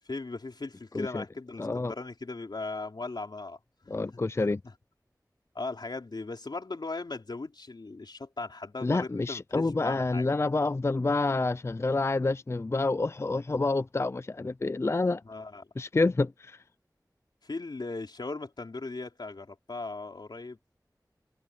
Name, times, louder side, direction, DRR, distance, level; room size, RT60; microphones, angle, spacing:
voice 1, 0.1-4.0 4.4-4.7 5.5-10.3 15.2-15.7 17.4-20.6, left 3 dB, 90° left, 4.1 m, -38 dB
voice 2, 1.6-1.9 3.9-4.6 8.8-15.2 15.8-16.6, left 3 dB, 40° left, 0.4 m, -28 dB
wide cardioid pair, 55°, 7 cm